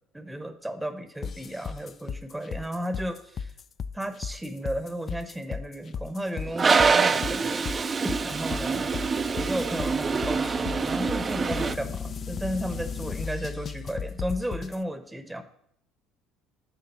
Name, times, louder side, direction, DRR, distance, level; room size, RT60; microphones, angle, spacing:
voice 1, 0.1-3.5 3.9-7.7 8.0-8.9 9.4-15.4, right 1 dB, 10° right, 9 dB, 0.9 m, -34 dB
sound 1, 1.2-14.8, left 6 dB, 40° left, 0.4 m, -35 dB
Toilet flush, 6.5-11.7, right 5 dB, 30° right, 0.5 m, -25 dB
11.0 x 3.7 x 6.9 m, 0.73 s
hypercardioid pair, 60°, 0 cm